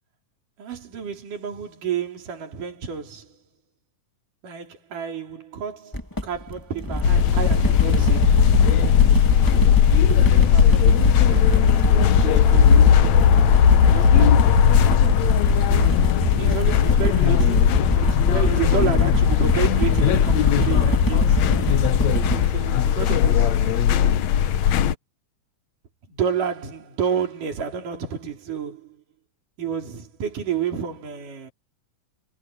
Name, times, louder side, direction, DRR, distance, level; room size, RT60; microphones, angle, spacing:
voice 1, 0.6-3.4 4.4-8.5 10.2-11.8 12.2-13.0 13.9-14.7 15.7-21.5 22.5-23.9 26.1-29.0 29.6-31.5, right 7 dB, 75° right, 5.7 m, -30 dB
sound 1, 5.9-22.5, left 1 dB, 10° left, 1.3 m, -25 dB
sound 2, 7.0-24.9, left 9 dB, 65° left, 2.1 m, -18 dB
omnidirectional pair, 3.8 m